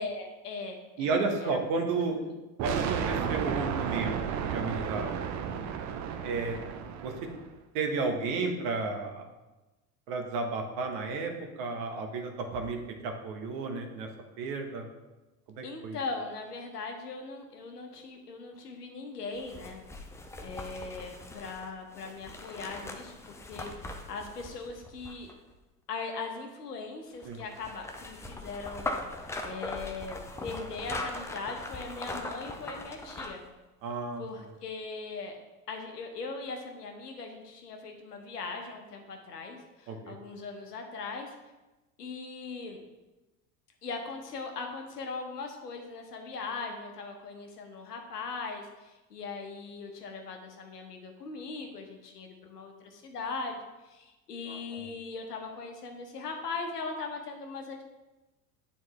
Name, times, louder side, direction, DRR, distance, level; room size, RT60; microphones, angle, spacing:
voice 1, 0.0-1.5 2.2-2.3 15.6-19.8 20.4-25.3 25.9-33.4 34.2-35.4 35.7-41.3 42.0-42.8 43.8-53.6 53.8-57.8, left 4 dB, 80° left, 4 dB, 1.1 m, -40 dB
voice 2, 1.0-2.2 2.6-5.1 6.2-6.6 7.0-7.1 7.7-9.2 10.1-14.1 14.4-14.8 15.6-16.0 27.2-27.4 33.8-34.2 39.9-40.2 54.5-54.9, right 4 dB, 50° right, 4 dB, 1.2 m, -32 dB
sound 1, 2.6-7.5, right 7 dB, 35° right, 0.7 m, -33 dB
sound 2, 19.4-25.5 27.2-33.5 33.9-34.0, left 2 dB, 5° left, 0.4 m, -40 dB
9.1 x 4.3 x 3.2 m, 1.1 s
hypercardioid pair, 80°, 47 cm